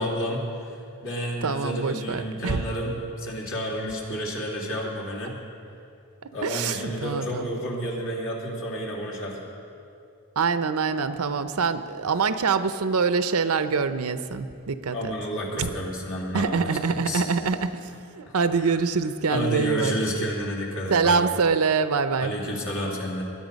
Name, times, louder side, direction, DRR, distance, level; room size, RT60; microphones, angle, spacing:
voice 1, 0.0-5.3 6.3-9.4 14.9-17.2 18.2-18.8 19.3-21.3 22.2-23.2, equal, 60° left, -2 dB, 2.9 m, -30 dB
voice 2, 1.4-2.6 6.2-7.5 10.4-15.1 15.6-15.7 16.3-19.9 20.9-22.4, right 5 dB, 75° right, 11 dB, 0.7 m, -25 dB
21.0 x 10.5 x 5.2 m, 2.5 s
head